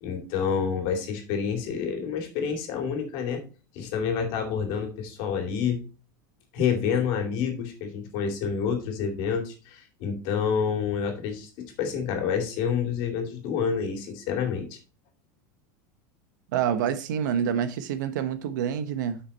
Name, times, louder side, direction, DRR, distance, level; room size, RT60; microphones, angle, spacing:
voice 1, 0.0-3.4 3.7-5.8 6.5-11.5 11.8-14.8, left 6 dB, 50° left, 2.5 m, -28 dB
voice 2, 16.5-19.2, right 8 dB, 80° right, 1.1 m, -27 dB
7.8 x 5.7 x 4.2 m
supercardioid pair, 160°, 10 cm